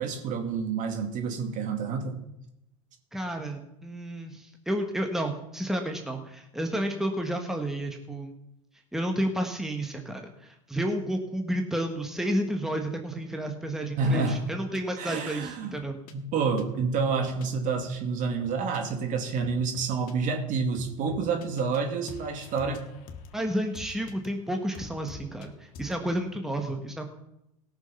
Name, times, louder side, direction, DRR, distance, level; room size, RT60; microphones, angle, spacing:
voice 1, 0.0-2.2 14.0-14.5 15.0-15.7 16.1-22.8, right 5 dB, 50° right, 5 dB, 2.3 m, -28 dB
voice 2, 3.1-8.3 8.9-16.0 23.3-27.1, right 1 dB, ahead, 4 dB, 1.5 m, -31 dB
sound 1, 14.1-14.2 14.7-14.8 15.4-16.1 16.6-16.9 17.2-17.4 17.7-17.9 18.4-18.8 19.4-20.1 20.7-21.8 22.1-24.3 24.7-25.5 25.7-26.0, left 5 dB, 55° left, 1.7 m, -46 dB
17.5 x 6.5 x 5.7 m, 0.84 s
hypercardioid pair, 95°, 18 cm